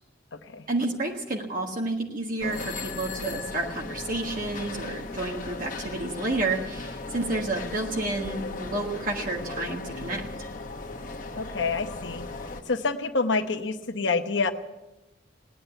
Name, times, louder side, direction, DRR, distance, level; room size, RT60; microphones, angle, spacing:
voice 1, 0.7-10.2, right 2 dB, 45° right, 1 dB, 1.4 m, -30 dB
sound 1, 2.4-12.6, left 3 dB, 45° left, 1.3 m, -37 dB
voice 2, 11.4-12.2 12.7-14.5, left 4 dB, 65° left, 7 dB, 0.9 m, -27 dB
17.5 x 10.5 x 7.9 m, 1.0 s
head